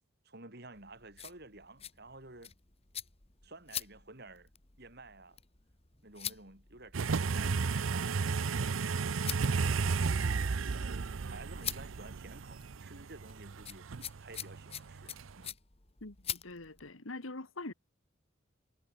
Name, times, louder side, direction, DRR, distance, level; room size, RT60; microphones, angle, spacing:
voice 1, 0.2-2.5 3.4-4.5 4.8-5.4 6.0-15.5, right 2 dB, 55° right, 4.5 m, -52 dB
sound 1, 0.7-16.9, left 10 dB, 30° left, 1.8 m, -46 dB
sound 2, 6.9-15.5, right 4 dB, 85° right, 0.6 m, -33 dB
voice 2, 16.0-17.7, left 2 dB, 90° left, 2.1 m, -44 dB
head